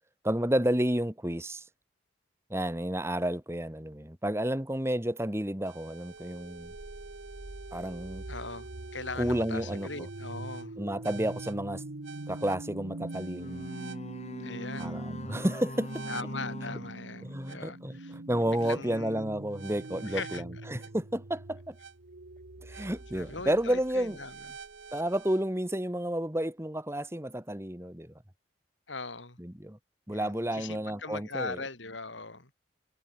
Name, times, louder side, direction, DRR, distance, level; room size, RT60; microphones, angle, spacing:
voice 1, 0.2-1.6 2.5-6.7 7.7-8.2 9.2-9.9 10.8-11.8 12.3-13.6 14.8-16.0 17.2-21.8 22.6-24.2 24.9-28.1 29.4-29.8 30.1-31.6, right 1 dB, 15° right, 2.1 m, -31 dB
sound 1, 5.7-25.4, right 2 dB, 80° right, 1.3 m, -43 dB
voice 2, 8.3-10.7 14.4-14.9 16.1-18.1 18.6-19.2 20.0-20.4 23.1-24.4 28.9-29.4 30.1-32.5, left 3 dB, 85° left, 5.2 m, -40 dB
sound 2, 13.4-17.8, left 1 dB, 35° left, 5.5 m, -43 dB
head